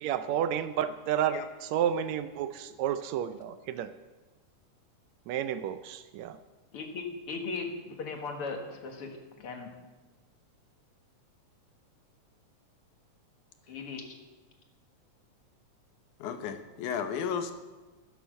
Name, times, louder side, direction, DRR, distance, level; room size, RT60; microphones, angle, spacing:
voice 1, 0.0-3.9 5.3-6.4, right 9 dB, 80° right, 11 dB, 1.8 m, -31 dB
voice 2, 6.7-9.7 13.7-14.1, left 4 dB, 55° left, 4 dB, 2.2 m, -38 dB
voice 3, 16.2-17.5, left 7 dB, 90° left, 8 dB, 2.5 m, -33 dB
12.5 x 10.0 x 6.3 m, 1.2 s
omnidirectional pair, 3.4 m